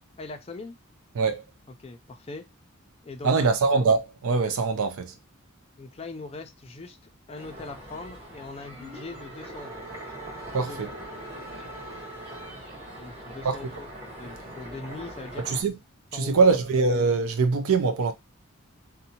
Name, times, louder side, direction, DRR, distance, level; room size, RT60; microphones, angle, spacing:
voice 1, 0.2-0.8 1.8-2.5 3.0-3.5 5.8-7.0 7.3-9.9 10.5-10.8 13.0-13.9 14.1-15.5 16.1-16.6, left 3 dB, 25° left, 0.4 m, -41 dB
voice 2, 3.2-5.1 10.5-10.9 13.4-13.6 15.5-15.7 16.1-18.1, right 4 dB, 75° right, 0.4 m, -23 dB
sound 1, 7.4-15.6, right 1 dB, 30° right, 1.3 m, -42 dB
sound 2, 8.7-12.9, right 1 dB, 15° right, 1.1 m, -44 dB
2.6 x 2.1 x 2.7 m
head